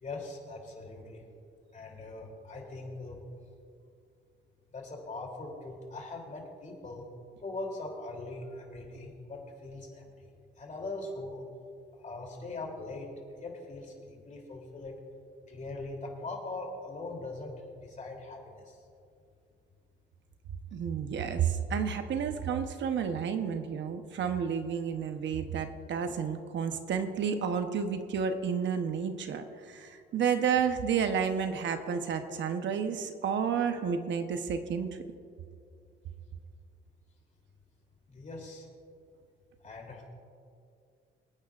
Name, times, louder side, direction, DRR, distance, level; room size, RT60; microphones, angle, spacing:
voice 1, 0.0-1.2 1.7-3.2 4.7-7.0 7.4-10.3 10.6-11.4 12.0-13.1 13.4-14.9 15.5-17.5 17.8-18.8 38.1-38.6 39.6-40.0, left 2 dB, 40° left, 0 dB, 3.0 m, -41 dB
voice 2, 20.7-35.0, right 7 dB, 65° right, 8 dB, 0.9 m, -31 dB
24.5 x 9.7 x 2.5 m, 2.4 s
cardioid pair, 90°, 20 cm